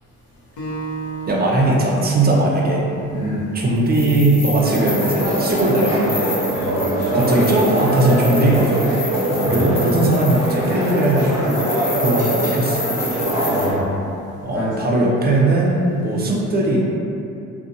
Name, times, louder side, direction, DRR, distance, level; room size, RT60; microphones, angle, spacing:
Acoustic guitar, 0.6-3.9, right 3 dB, 75° left, 0.7 m, -34 dB
voice 1, 1.3-2.9 3.5-6.4 7.1-8.9 9.4-11.6 12.0-12.8 14.4-16.8, right 2 dB, 30° right, -3 dB, 0.5 m, -19 dB
voice 2, 3.1-3.4 6.5-7.4 9.3-9.7 13.4-13.8 14.5-14.7, left 1 dB, 55° left, -10 dB, 1.2 m, -27 dB
sound 1, 3.9-13.7, left 1 dB, 20° left, 0.5 m, -30 dB
sound 2, 4.6-13.7, right 1 dB, 10° right, 0.9 m, -22 dB
2.6 x 2.2 x 2.5 m, 2.7 s
cardioid pair, 90°, 30 cm